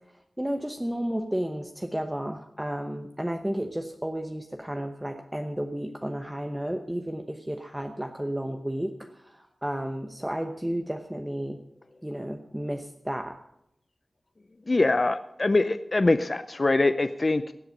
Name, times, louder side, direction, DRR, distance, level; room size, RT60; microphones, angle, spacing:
voice 1, 0.4-11.6 12.0-13.4, right 1 dB, 10° right, 5 dB, 0.9 m, -32 dB
voice 2, 14.7-17.5, left 2 dB, 45° left, 12 dB, 0.5 m, -23 dB
16.0 x 7.9 x 6.5 m, 0.80 s
wide cardioid pair, 65°, 0 cm